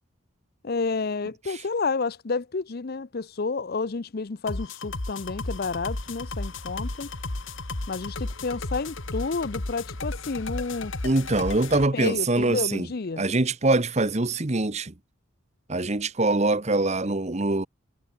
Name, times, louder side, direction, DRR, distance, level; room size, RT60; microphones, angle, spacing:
voice 1, 0.6-7.1 7.9-10.9 11.9-13.2, left 4 dB, 45° left, 0.6 m, -30 dB
sound 1, 4.5-11.8, left 2 dB, 65° left, 1.8 m, -34 dB
sound 2, 5.5-10.7, right 1 dB, 60° right, 6.7 m, -59 dB
voice 2, 11.0-12.9 13.2-14.9 15.7-17.7, right 2 dB, 30° right, 1.0 m, -24 dB
head